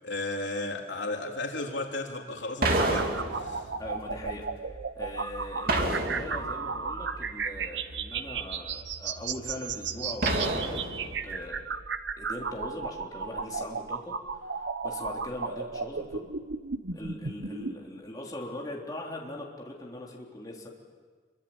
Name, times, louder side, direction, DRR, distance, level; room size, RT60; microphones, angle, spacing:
voice 1, 0.0-3.7, left 2 dB, 85° left, 2 dB, 3.4 m, -34 dB
sound 1, 2.6-3.8 5.7-6.7 10.2-11.3, right 2 dB, 55° right, 3.0 m, -28 dB
sound 2, 2.7-17.7, right 5 dB, 80° right, 1.2 m, -35 dB
voice 2, 3.8-11.6 12.2-14.1 14.4-16.3 16.9-20.7, left 1 dB, 20° left, -2 dB, 3.7 m, -41 dB
27.0 x 24.0 x 8.8 m, 1.5 s
head